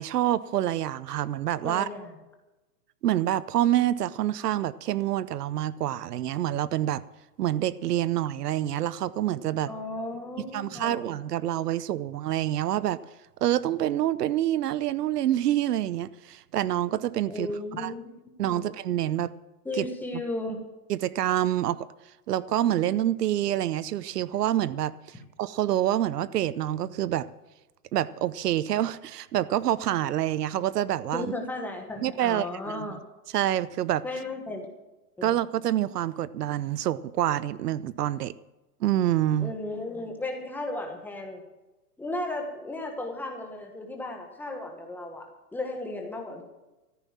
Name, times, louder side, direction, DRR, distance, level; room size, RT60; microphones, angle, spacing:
voice 1, 0.0-1.9 3.0-7.0 7.4-9.7 10.4-13.0 13.4-17.5 17.8-17.9 18.4-19.3 19.8-19.9 20.9-21.8 22.3-27.3 27.9-31.3 32.0-32.9 33.3-34.0 35.2-38.3 38.8-39.5, right 12 dB, 75° right, 18 dB, 0.8 m, -27 dB
voice 2, 1.6-2.1 9.6-11.0 17.3-18.1 18.5-18.6 19.6-20.6 31.1-33.0 34.0-34.7 35.2-35.3 39.4-41.4 42.0-46.4, left 2 dB, 5° left, 2 dB, 1.3 m, -35 dB
14.0 x 9.4 x 7.4 m, 1.0 s
hypercardioid pair, 160°, 47 cm